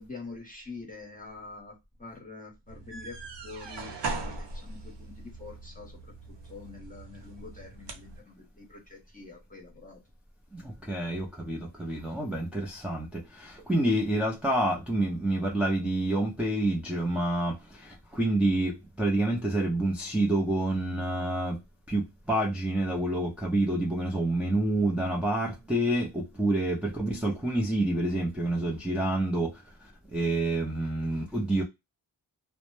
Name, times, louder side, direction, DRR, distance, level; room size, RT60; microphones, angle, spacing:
voice 1, 0.0-10.0, left 3 dB, 20° left, 0.9 m, -46 dB
sound 1, 2.7-8.2, right 3 dB, 70° right, 0.7 m, -40 dB
voice 2, 10.5-21.6 21.9-31.6, right 1 dB, 5° right, 0.5 m, -28 dB
2.1 x 2.0 x 3.0 m
cardioid pair, 70°, 44 cm